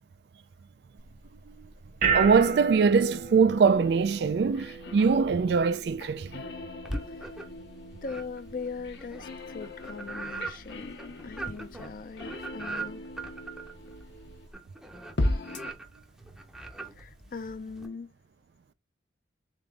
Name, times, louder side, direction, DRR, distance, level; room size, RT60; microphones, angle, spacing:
sound 1, 1.0-14.5, right 5 dB, 45° right, 1.2 m, -37 dB
voice 1, 2.0-6.4, right 5 dB, 60° right, 0.3 m, -23 dB
sound 2, 3.6-14.5 15.2-15.7, left 1 dB, 70° left, 0.8 m, -38 dB
sound 3, 6.8-7.7 8.0-17.9, right 2 dB, 5° right, 0.6 m, -40 dB
voice 2, 8.0-11.0 11.2-13.1 16.9-18.1, left 4 dB, 50° left, 0.5 m, -40 dB
3.8 x 3.6 x 3.4 m
head